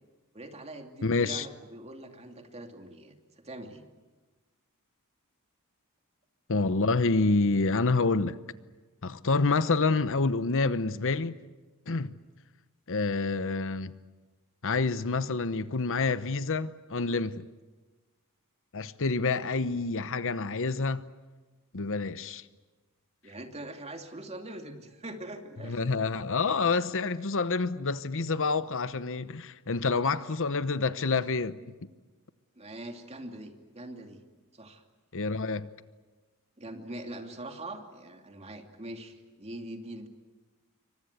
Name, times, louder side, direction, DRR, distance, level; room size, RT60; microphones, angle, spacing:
voice 1, 0.3-3.1 3.4-3.8 23.2-25.9 32.6-34.2 34.5-34.8 36.6-40.1, right 1 dB, 30° right, 2.7 m, -43 dB
voice 2, 1.0-1.5 6.5-8.4 9.0-11.3 11.9-12.1 12.9-13.9 14.6-17.5 18.7-21.0 21.7-22.4 25.6-31.6 35.1-35.7, left 3 dB, 60° left, 1.0 m, -28 dB
27.5 x 24.5 x 8.3 m
head